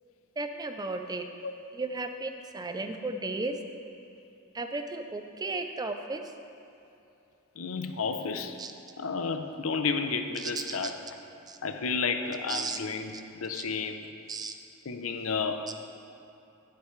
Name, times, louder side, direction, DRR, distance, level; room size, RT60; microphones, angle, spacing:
voice 1, 0.4-1.2 1.7-3.6 4.5-6.2 8.6-8.7 10.4-10.9 11.5-11.6 12.5-12.8 13.5-13.7 14.3-14.5, right 3 dB, 20° right, 6 dB, 0.5 m, -34 dB
voice 2, 7.6-8.6 9.0-10.9 11.6-14.0 14.9-15.7, left 5 dB, 90° left, 7 dB, 0.6 m, -31 dB
11.5 x 9.7 x 3.2 m, 2.9 s
head